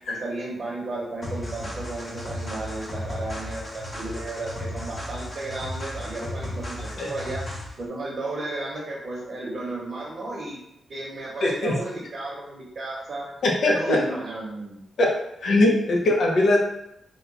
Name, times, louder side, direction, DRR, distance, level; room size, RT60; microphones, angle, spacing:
voice 1, 0.1-7.4 7.8-10.6 10.9-13.3 13.7-14.8, right 2 dB, 50° right, -5 dB, 0.8 m, -33 dB
sound 1, 1.2-7.8, left 1 dB, 30° left, 0.7 m, -35 dB
voice 2, 11.4-11.8 13.4-14.0 15.0-15.1 15.4-16.6, left 2 dB, 70° left, -1 dB, 0.6 m, -20 dB
2.9 x 2.1 x 3.7 m, 0.82 s
wide cardioid pair, 115°, 0 cm